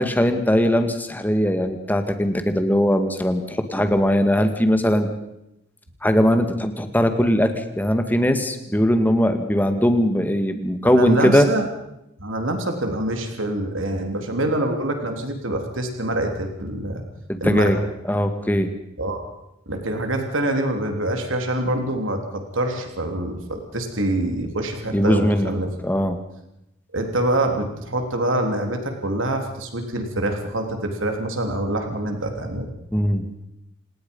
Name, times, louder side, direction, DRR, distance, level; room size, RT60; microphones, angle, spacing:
voice 1, 0.0-5.1 6.0-11.5 17.3-17.8 18.1-18.7 24.9-25.5 25.8-26.2 32.9-33.3, equal, 10° left, 7 dB, 1.9 m, -20 dB
voice 2, 10.8-11.7 12.2-17.0 17.4-17.7 19.0-19.3 19.7-25.7 26.9-32.7, right 1 dB, 85° right, 4 dB, 3.5 m, -25 dB
27.5 x 19.5 x 5.5 m, 0.85 s
head